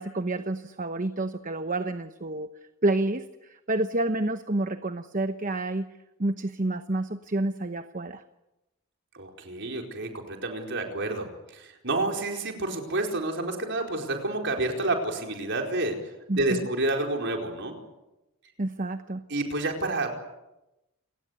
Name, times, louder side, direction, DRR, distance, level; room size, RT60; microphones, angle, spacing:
voice 1, 0.0-2.5 2.8-5.9 6.2-8.2 16.3-16.7 18.6-19.2, right 2 dB, 35° right, 9 dB, 1.0 m, -29 dB
voice 2, 9.1-11.3 11.5-16.0 16.3-17.8 19.3-20.1, right 2 dB, 55° right, 2 dB, 4.7 m, -29 dB
29.0 x 19.0 x 8.2 m, 0.95 s
head